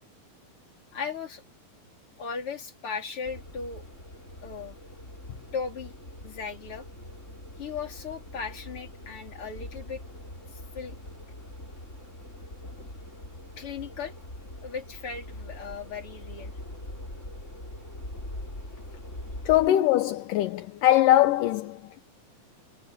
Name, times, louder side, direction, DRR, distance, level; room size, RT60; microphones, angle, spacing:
voice 1, 0.9-1.4 2.2-3.9 4.4-4.8 5.5-5.9 6.2-6.9 7.6-10.0 10.5-11.0 13.6-14.2 14.6-16.6, left 5 dB, 40° left, 4.2 m, -37 dB
sound 1, 3.2-19.7, left 1 dB, 20° left, 6.3 m, -43 dB
voice 2, 19.5-22.0, left 14 dB, 75° left, 2.4 m, -22 dB
omnidirectional pair, 4.2 m